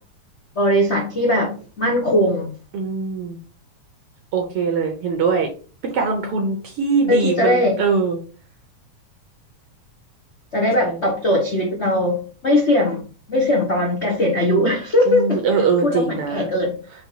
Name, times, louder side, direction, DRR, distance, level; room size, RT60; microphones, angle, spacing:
voice 1, 0.5-2.5 7.1-7.8 10.5-15.4 15.8-16.8, left 1 dB, 65° left, -3 dB, 0.6 m, -20 dB
voice 2, 2.7-3.4 4.3-5.5 5.8-8.2 10.8-11.0 15.1-16.5, right 4 dB, 65° right, 3 dB, 1.5 m, -22 dB
5.3 x 3.8 x 4.6 m, 0.38 s
omnidirectional pair, 3.5 m